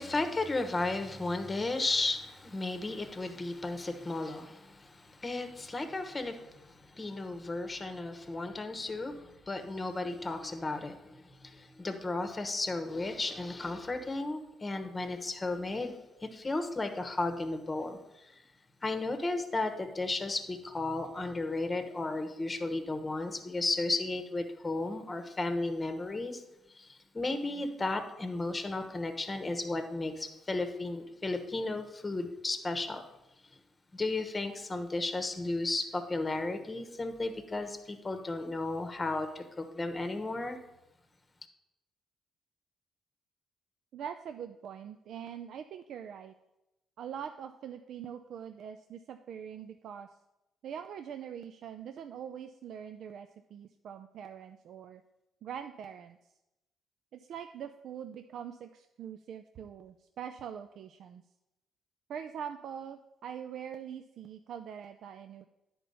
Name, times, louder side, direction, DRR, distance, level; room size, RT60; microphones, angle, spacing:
voice 1, 0.0-18.4 18.8-26.4 26.7-33.0 33.9-40.6, left 2 dB, 25° left, 7 dB, 1.0 m, -34 dB
voice 2, 43.9-46.3 47.0-50.1 50.6-55.0 55.4-56.3 57.1-61.2 62.1-65.4, right 8 dB, 70° right, 8 dB, 0.4 m, -43 dB
10.0 x 4.4 x 5.4 m, 0.93 s
cardioid pair, 90°, 0 cm